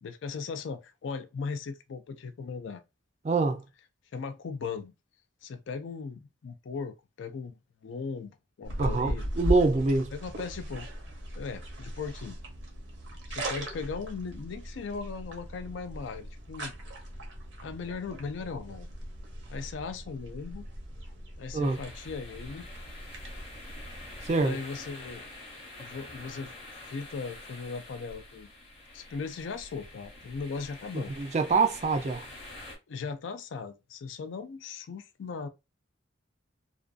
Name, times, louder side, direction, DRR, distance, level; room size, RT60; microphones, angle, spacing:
voice 1, 0.0-2.8 4.1-4.9 5.4-7.6 7.8-9.2 10.1-10.9 11.3-12.4 13.3-16.7 17.6-18.9 19.5-20.6 21.4-22.7 24.4-25.2 25.8-26.5 26.8-28.5 28.9-31.1 32.9-35.5, left 5 dB, 70° left, 0.4 m, -38 dB
voice 2, 3.2-3.6 8.8-10.1 21.5-21.8 24.2-24.6 31.2-32.3, right 3 dB, 35° right, 0.3 m, -25 dB
sound 1, 8.6-24.3, equal, 60° right, 0.7 m, -38 dB
sound 2, 21.6-32.8, left 2 dB, 30° left, 0.8 m, -47 dB
2.4 x 2.3 x 2.4 m
head